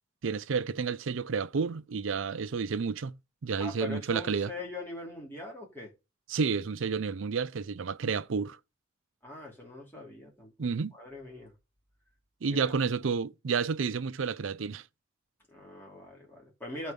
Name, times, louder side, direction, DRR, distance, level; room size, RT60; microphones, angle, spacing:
voice 1, 0.2-3.2 3.4-4.5 6.3-8.6 10.6-10.9 12.4-14.8, right 5 dB, 80° right, 0.5 m, -30 dB
voice 2, 3.6-5.9 9.2-11.5 12.5-12.7 13.0-13.1 15.5-16.9, left 2 dB, 10° left, 3.1 m, -42 dB
12.0 x 4.7 x 5.2 m
head